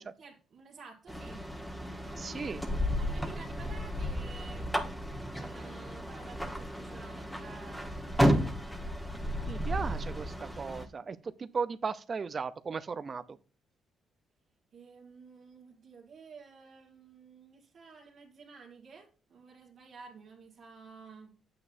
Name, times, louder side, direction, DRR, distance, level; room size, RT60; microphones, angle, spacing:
voice 1, 0.0-1.4 1.8-4.7 5.3-8.8 14.7-21.3, right 5 dB, 65° right, 2.0 m, -52 dB
sound 1, 1.1-10.9, equal, 5° left, 1.3 m, -33 dB
voice 2, 2.2-2.6 9.4-13.4, right 5 dB, 40° right, 0.6 m, -36 dB
8.8 x 8.7 x 2.7 m
cardioid pair, 90°, 0 cm